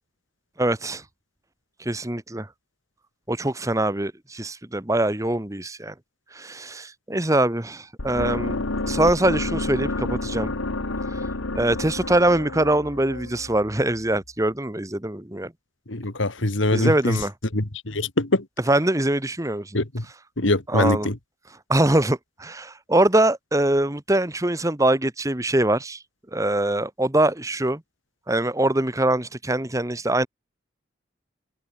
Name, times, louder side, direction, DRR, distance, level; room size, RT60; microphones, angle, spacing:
voice 1, 0.6-1.0 1.8-2.5 3.3-5.9 6.3-8.6 8.9-10.5 11.1-11.2 11.5-15.5 16.7-17.3 18.7-19.8 20.7-21.1 21.7-26.0 26.3-27.8 28.3-30.3, right 1 dB, 15° right, 1.3 m, -23 dB
sound 1, 8.0-14.1, left 2 dB, 90° left, 1.6 m, -30 dB
voice 2, 15.9-17.2 17.5-18.4 19.7-20.0 20.4-21.2, left 2 dB, 75° left, 2.2 m, -23 dB
open air
head